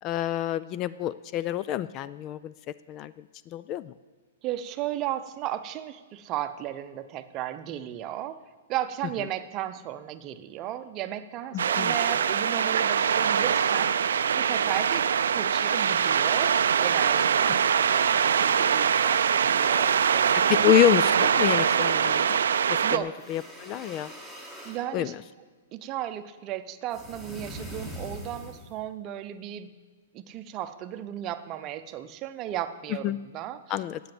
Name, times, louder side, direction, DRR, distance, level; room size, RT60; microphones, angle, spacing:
voice 1, 0.0-2.5 2.9-3.1 3.5-3.9 11.5-11.9 20.3-22.4 22.7-24.1 24.9-25.2 33.0-33.2 33.7-34.0, left 12 dB, 30° left, 16 dB, 0.3 m, -27 dB
voice 2, 4.4-8.4 8.7-14.0 14.3-15.1 15.3-20.6 22.8-23.1 24.6-25.1 25.7-29.7 30.1-33.6, right 12 dB, 30° right, 10 dB, 0.7 m, -35 dB
sound 1, 11.6-23.0, right 7 dB, 80° right, 0.4 m, -23 dB
sound 2, 23.0-24.8 26.9-28.8, equal, 10° left, 1.8 m, -42 dB
10.5 x 8.2 x 7.8 m, 1.4 s
hypercardioid pair, 140°, 0 cm